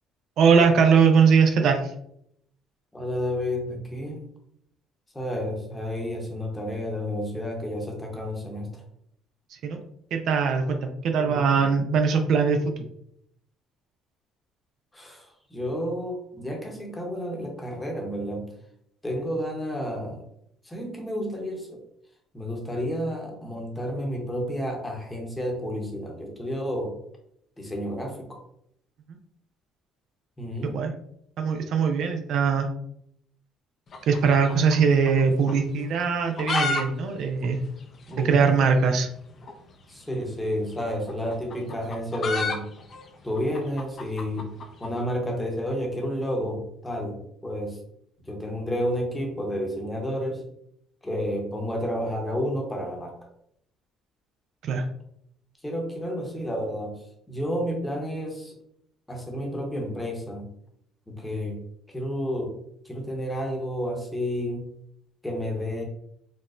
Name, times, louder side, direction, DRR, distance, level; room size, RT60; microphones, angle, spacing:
voice 1, 0.4-1.9 9.6-9.8 10.1-12.9 30.6-30.9 31.4-32.7 34.1-37.6 38.2-39.1 54.6-54.8, right 5 dB, 65° right, 5 dB, 0.4 m, -21 dB
voice 2, 2.9-4.2 5.1-8.8 11.2-11.6 14.9-15.3 15.5-18.5 19.0-20.2 20.6-21.8 22.3-27.0 27.6-28.4 30.4-30.8 38.1-38.5 39.9-42.6 43.2-44.5 44.8-47.8 48.2-50.4 51.0-53.1 55.6-56.9 57.3-58.5 59.1-60.5 61.1-62.6 62.8-64.7 65.2-65.8, equal, 10° left, 1 dB, 0.9 m, -31 dB
sound 1, 33.9-35.2 35.5-35.6 36.1-36.8 37.1-37.2 37.4-37.5 38.1-38.2 39.4-39.6 40.7-44.9, left 4 dB, 45° left, 0.5 m, -30 dB
4.0 x 2.1 x 2.5 m, 0.71 s
cardioid pair, 100°, 0 cm